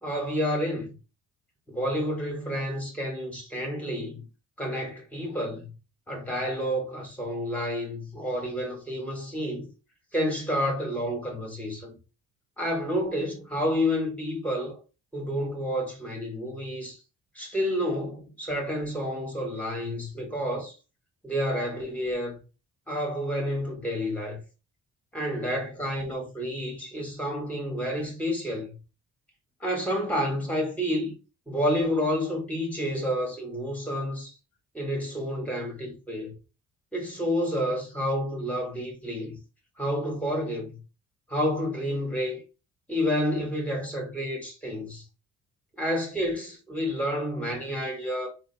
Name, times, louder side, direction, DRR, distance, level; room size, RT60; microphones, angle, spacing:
voice 1, 0.0-0.9 1.7-4.2 4.6-5.7 6.1-9.7 10.1-11.9 12.6-14.8 15.1-17.0 17.4-20.8 21.2-22.4 22.9-24.4 25.1-28.8 29.6-31.1 31.5-34.3 34.7-36.3 36.9-39.4 39.8-40.8 41.3-42.4 42.9-45.0 45.8-48.3, equal, 5° left, 1.8 m, -29 dB
3.5 x 2.4 x 3.4 m
cardioid pair, 90°, 30 cm